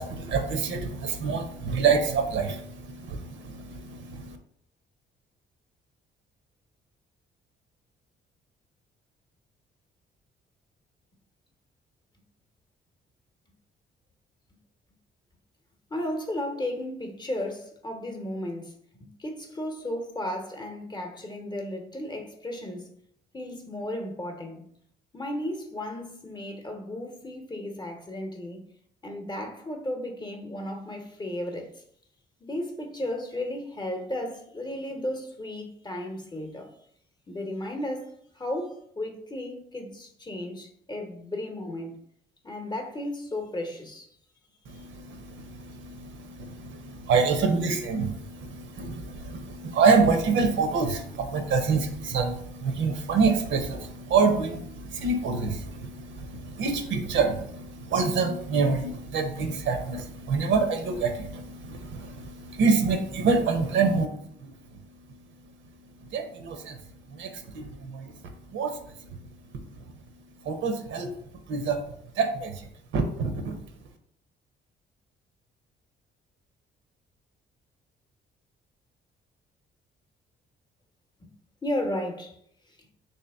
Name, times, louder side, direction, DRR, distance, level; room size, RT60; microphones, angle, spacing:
voice 1, 0.0-4.4 44.7-64.1 66.1-66.7 67.1-68.1 68.5-68.7 70.5-71.1 71.5-71.8 72.2-72.5 72.9-73.6, right 4 dB, 70° right, 0.7 m, -26 dB
voice 2, 15.9-22.9 23.3-24.6 25.1-28.7 29.0-31.8 32.4-36.7 37.3-41.9 42.4-44.1 44.7-44.8 81.2-81.3 81.6-82.4 82.8-82.9, left 1 dB, 20° left, 0.8 m, -34 dB
3.5 x 2.8 x 3.4 m
cardioid pair, 90°, 20 cm